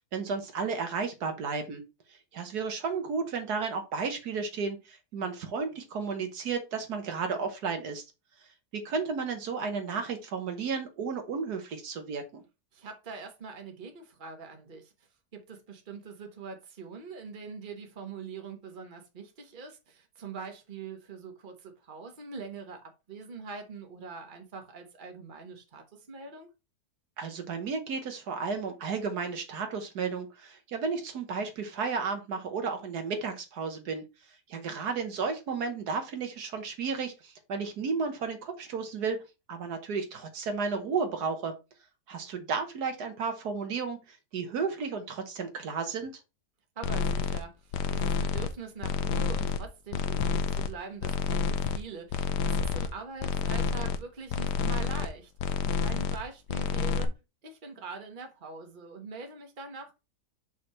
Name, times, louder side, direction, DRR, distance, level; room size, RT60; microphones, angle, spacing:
voice 1, 0.1-1.8 2.1-8.0 8.7-12.4 27.2-34.0 34.5-39.2 39.5-41.6 42.1-46.1, right 5 dB, 70° right, 1.6 m, -33 dB
voice 2, 12.7-14.9 15.3-26.5 46.7-57.1 57.4-60.0, right 5 dB, 35° right, 1.3 m, -43 dB
sound 1, 46.8-47.4 47.7-48.5 48.8-49.6 49.9-50.7 51.0-51.8 52.1-52.9 53.2-54.0 54.3-55.1 55.4-56.2 56.5-57.1, left 5 dB, 85° left, 1.3 m, -29 dB
6.2 x 5.6 x 3.2 m
omnidirectional pair, 1.7 m